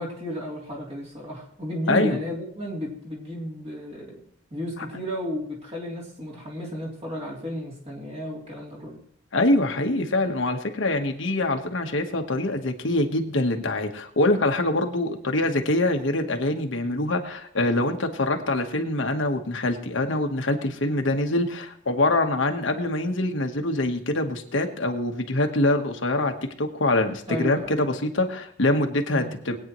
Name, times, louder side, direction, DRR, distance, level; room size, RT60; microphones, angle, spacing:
voice 1, 0.0-4.2 4.5-9.0 27.3-27.9 29.1-29.3, equal, 30° right, -3 dB, 3.1 m, -33 dB
voice 2, 9.3-26.3 26.6-29.6, left 2 dB, 70° left, 4 dB, 1.3 m, -24 dB
20.5 x 9.2 x 3.1 m, 0.62 s
head